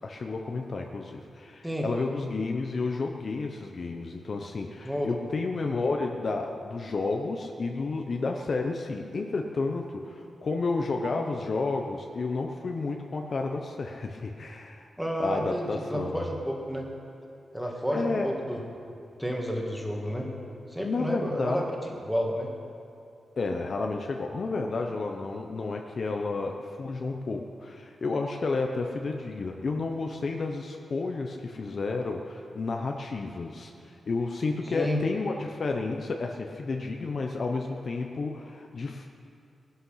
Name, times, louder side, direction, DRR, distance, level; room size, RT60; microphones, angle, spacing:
voice 1, 0.0-14.9 15.2-16.2 17.9-18.3 20.8-21.7 23.4-39.1, left 3 dB, 45° left, 3 dB, 0.9 m, -31 dB
voice 2, 4.8-5.2 15.0-16.9 17.5-18.6 19.2-20.3 20.7-21.6 22.0-22.5 34.7-35.0, equal, ahead, -1 dB, 2.2 m, -30 dB
19.0 x 11.5 x 5.8 m, 2.5 s
wide cardioid pair, 135°, 0 cm